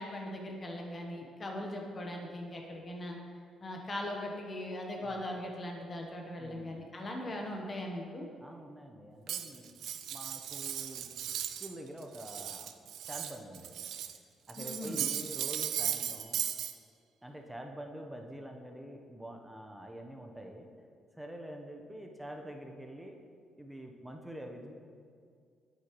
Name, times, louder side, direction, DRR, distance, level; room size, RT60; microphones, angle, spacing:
voice 1, 0.0-3.2 3.6-8.3 14.6-15.1, left 1 dB, 35° left, 1 dB, 1.1 m, -40 dB
voice 2, 6.4-6.8 8.4-9.8 10.1-11.1 11.6-12.7 13.1-13.8 14.5-16.4 17.2-20.7 21.1-23.2 23.6-24.7, right 1 dB, 5° right, 2 dB, 0.9 m, -46 dB
Cutlery silverware, 9.3-11.7 12.0-14.2 14.5-16.7, right 10 dB, 75° right, 0.4 m, -37 dB
8.2 x 8.1 x 3.1 m, 2.2 s
cardioid pair, 90°, 0 cm